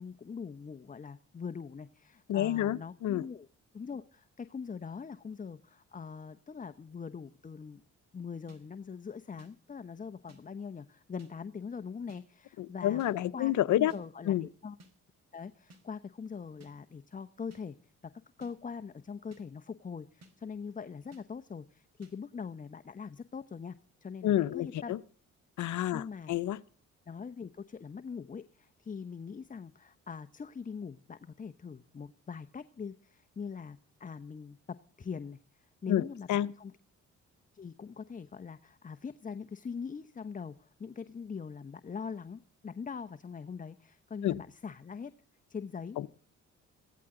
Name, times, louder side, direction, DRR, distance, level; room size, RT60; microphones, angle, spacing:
voice 1, 0.0-3.5 3.7-7.8 8.1-13.0 13.3-14.8 15.3-17.8 18.0-18.1 18.4-23.8 24.0-25.0 25.9-26.3 27.1-35.4 35.8-36.7 37.5-45.1 45.5-46.0, left 6 dB, 25° left, 0.9 m, -42 dB
voice 2, 2.3-3.2 12.6-13.9 14.3-14.5 24.2-25.0 25.6-26.6 35.9-36.5 44.2-44.4 46.0-46.1, left 12 dB, 75° left, 0.8 m, -29 dB
sound 1, 8.5-8.6 9.4-9.5 10.3-10.4 11.2-11.3 12.1-12.2 13.0-13.1 13.9-14.0 14.8-14.9 15.7-15.8 16.6-16.7 17.5-17.6 18.4-18.5 19.3-19.4 20.2-20.3 21.1-21.2 22.0-22.1, equal, 60° right, 4.6 m, -55 dB
21.5 x 16.0 x 3.8 m
cardioid pair, 90°, 30 cm